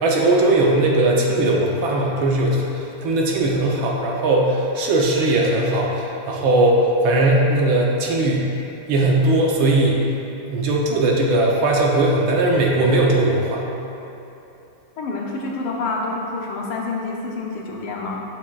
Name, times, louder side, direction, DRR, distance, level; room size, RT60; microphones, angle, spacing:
voice 1, 0.0-2.7 3.0-8.5 8.9-10.0 10.5-13.7, right 2 dB, 70° right, -1 dB, 1.4 m, -19 dB
voice 2, 15.0-18.2, left 3 dB, 75° left, -1 dB, 1.7 m, -27 dB
8.4 x 7.3 x 2.4 m, 3.0 s
omnidirectional pair, 2.4 m